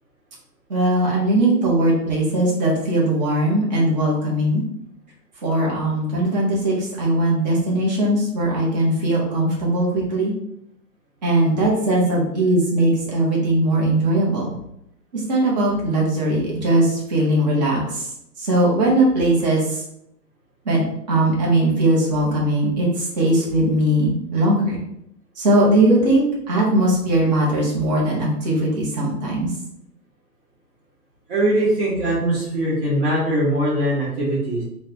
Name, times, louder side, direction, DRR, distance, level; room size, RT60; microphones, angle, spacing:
voice 1, 0.7-4.6 5.4-10.3 11.2-14.5 15.1-18.1 18.4-19.8 20.6-20.8 21.1-24.8 25.4-29.5, right 1 dB, 25° right, -5 dB, 1.0 m, -19 dB
voice 2, 31.3-34.6, right 1 dB, 45° right, -9 dB, 1.5 m, -21 dB
4.7 x 2.3 x 2.8 m, 0.77 s
hypercardioid pair, 145°, 50 cm